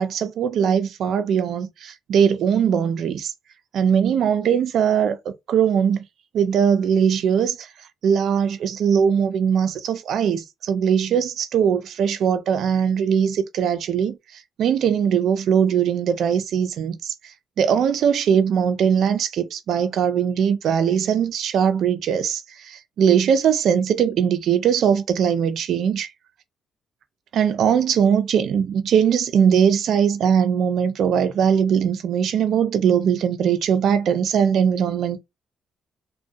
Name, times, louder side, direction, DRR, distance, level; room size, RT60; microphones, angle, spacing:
voice 1, 0.0-3.3 3.7-5.2 5.5-6.0 6.3-7.6 8.0-14.2 14.6-17.1 17.6-22.4 22.7-26.1 27.3-35.2, right 8 dB, 70° right, 0.4 m, -20 dB
2.3 x 2.2 x 2.6 m
cardioid pair, 90°, 0 cm